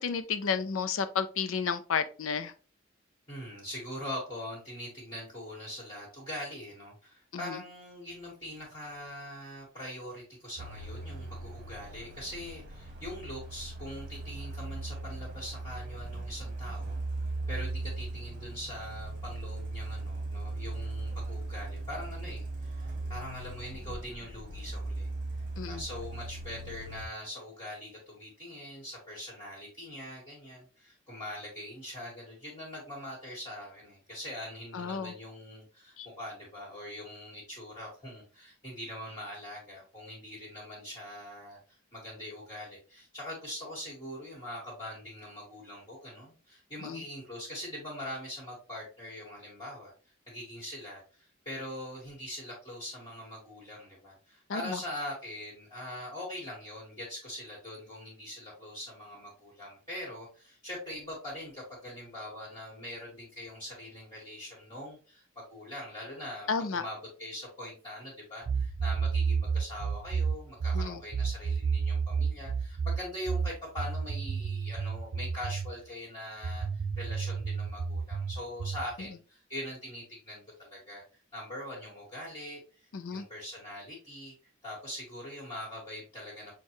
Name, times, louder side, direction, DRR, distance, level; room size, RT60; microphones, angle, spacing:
voice 1, 0.0-2.5 7.3-7.6 25.6-25.8 34.7-35.1 36.0-36.1 46.8-47.0 54.5-54.8 66.5-66.8 70.7-71.0 82.9-83.2, left 6 dB, 90° left, 0.5 m, -32 dB
voice 2, 3.3-17.0 17.5-25.1 25.7-49.9 50.3-65.2 65.5-81.0 81.3-82.6 83.1-84.3 84.6-86.5, left 1 dB, 25° left, 1.7 m, -42 dB
Truck, 10.6-27.1, right 2 dB, 40° right, 1.0 m, -38 dB
sound 1, 68.5-75.7 76.4-78.9, right 5 dB, 65° right, 0.4 m, -31 dB
6.4 x 2.3 x 3.0 m
head